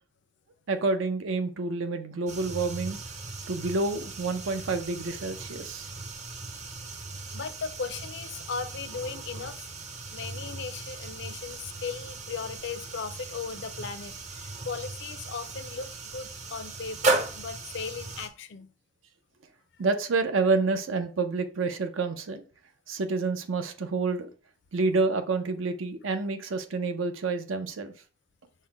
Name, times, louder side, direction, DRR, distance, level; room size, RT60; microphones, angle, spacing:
voice 1, 0.7-3.0 3.5-5.9 19.8-22.4 22.9-24.3 24.7-27.9, right 3 dB, 75° right, 0.6 m, -28 dB
sound 1, 2.3-18.3, right 3 dB, 35° right, 0.6 m, -36 dB
voice 2, 7.3-9.7 10.1-18.7, left 5 dB, 60° left, 0.5 m, -37 dB
5.6 x 2.1 x 4.5 m
head